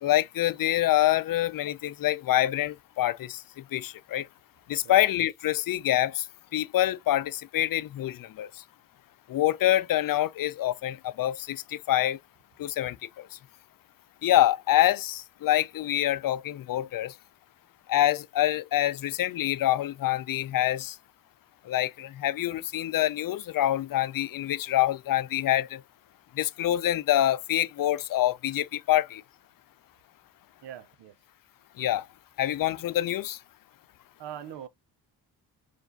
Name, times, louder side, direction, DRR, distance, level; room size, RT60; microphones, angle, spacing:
voice 1, 0.0-4.3 4.7-6.3 6.5-8.6 9.3-12.2 12.6-13.4 14.2-17.2 17.9-21.0 21.6-25.8 26.3-29.2 31.8-32.1 32.4-33.4, left 13 dB, 55° left, 0.5 m, -26 dB
voice 2, 30.6-31.1 34.2-34.7, right 10 dB, 80° right, 0.8 m, -41 dB
4.8 x 2.6 x 3.9 m
cardioid pair, 75°, 41 cm